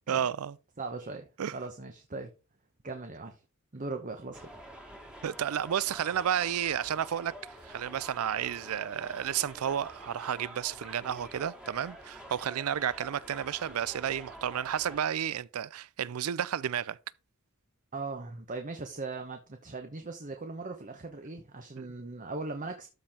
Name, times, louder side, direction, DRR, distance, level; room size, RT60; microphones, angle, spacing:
voice 1, 0.1-0.6 1.4-1.5 5.2-7.3 7.6-17.0 21.8-21.9, right 9 dB, 90° right, 0.4 m, -32 dB
voice 2, 0.8-2.3 2.8-3.4 3.7-4.5 17.9-22.9, right 3 dB, 40° right, 0.9 m, -39 dB
sound 1, 4.3-15.0, equal, 5° right, 1.6 m, -48 dB
13.0 x 4.4 x 3.6 m
head